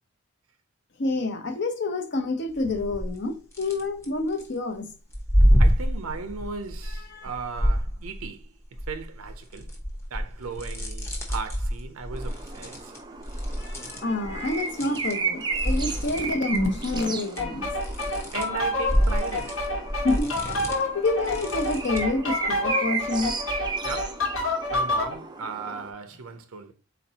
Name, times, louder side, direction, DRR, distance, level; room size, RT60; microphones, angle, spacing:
voice 1, 1.0-4.9 7.1-7.3 13.6-17.7 20.0-20.6 20.9-23.4, left 2 dB, 50° left, 0.7 m, -28 dB
sound 1, 2.6-3.2 3.5-4.5 5.1-8.4 8.7-15.1 15.4-22.2, equal, 10° left, 0.8 m, -27 dB
voice 2, 5.6-8.5 8.9-9.7 10.1-12.9 18.3-19.6 23.8-24.3 24.7-26.7, right 5 dB, 75° right, 0.5 m, -36 dB
sound 2, 12.1-25.9, right 4 dB, 20° right, 0.4 m, -35 dB
sound 3, 17.4-25.1, left 2 dB, 70° left, 1.3 m, -29 dB
4.2 x 4.0 x 2.8 m
head